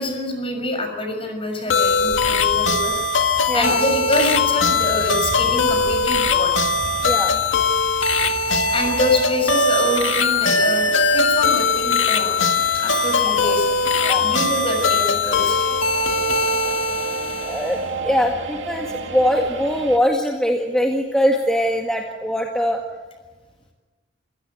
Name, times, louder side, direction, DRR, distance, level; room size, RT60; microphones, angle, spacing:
voice 1, 0.0-3.0 3.5-6.5 8.7-12.4 12.8-13.7 14.2-15.7, left 1 dB, 30° left, 4 dB, 6.3 m, -25 dB
sound 1, 1.7-17.9, left 4 dB, 85° left, 2.0 m, -20 dB
sound 2, 1.8-9.2, equal, 55° right, 7.8 m, -37 dB
sound 3, 2.8-20.0, right 4 dB, 70° right, 2.4 m, -36 dB
voice 2, 3.5-3.8 7.0-7.4 13.4-13.6 14.0-14.3 16.2-16.4 17.4-22.8, equal, 5° left, 0 dB, 1.9 m, -22 dB
27.5 x 16.5 x 9.3 m, 1.3 s
head